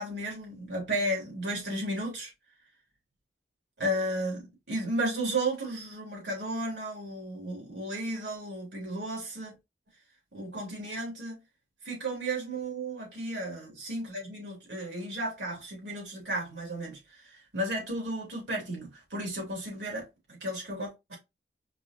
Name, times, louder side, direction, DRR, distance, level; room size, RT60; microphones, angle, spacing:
voice 1, 0.0-2.3 3.8-9.5 10.3-11.4 11.8-21.2, right 1 dB, 80° right, 2.9 m, -34 dB
5.3 x 3.2 x 2.9 m
head